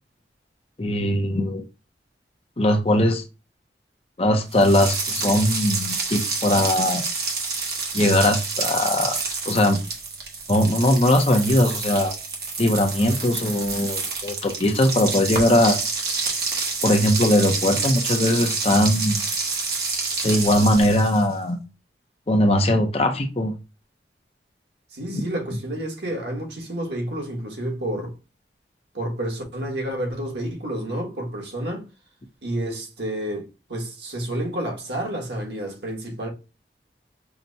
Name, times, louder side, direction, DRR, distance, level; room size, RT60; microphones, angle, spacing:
voice 1, 0.8-1.6 2.6-3.2 4.2-7.0 7.9-9.2 9.5-9.8 10.5-12.1 12.6-15.8 16.8-19.1 20.2-21.6 22.3-23.5, left 1 dB, 35° left, 0.6 m, -20 dB
sound 1, 4.5-21.3, right 4 dB, 60° right, 1.0 m, -28 dB
voice 2, 24.9-28.1 28.9-31.9 32.4-36.3, right 1 dB, 80° right, 1.4 m, -30 dB
5.7 x 2.1 x 2.6 m
head